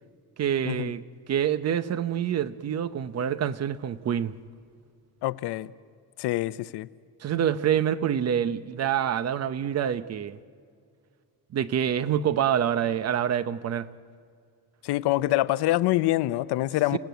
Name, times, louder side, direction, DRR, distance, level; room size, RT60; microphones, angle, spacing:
voice 1, 0.4-1.0 1.3-4.3 7.2-10.4 11.5-13.9 16.9-17.0, right 9 dB, 40° right, 0.7 m, -26 dB
voice 2, 5.2-5.7 6.2-6.9 14.8-17.0, left 16 dB, 90° left, 0.7 m, -25 dB
29.5 x 17.0 x 9.3 m
cardioid pair, 160°, 39 cm